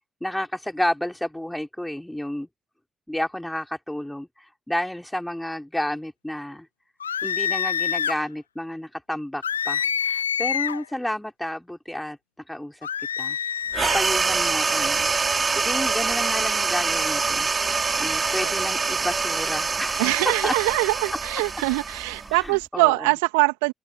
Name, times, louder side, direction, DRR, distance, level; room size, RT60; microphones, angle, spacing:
voice 1, 0.2-2.5 3.1-6.7 7.2-12.2 12.5-12.8 13.2-13.4 13.8-15.1 15.6-17.5 18.0-20.0 20.4-20.5 22.3-23.1, left 1 dB, 5° left, 5.0 m, -31 dB
sound 1, 7.0-8.2 9.4-10.9 12.8-14.0, left 8 dB, 85° left, 0.6 m, -26 dB
sound 2, 13.7-22.6, right 4 dB, 35° right, 4.0 m, -25 dB
voice 2, 20.0-23.7, right 30 dB, 75° right, 2.5 m, -23 dB
open air
figure-of-eight pair, 40°, 0 cm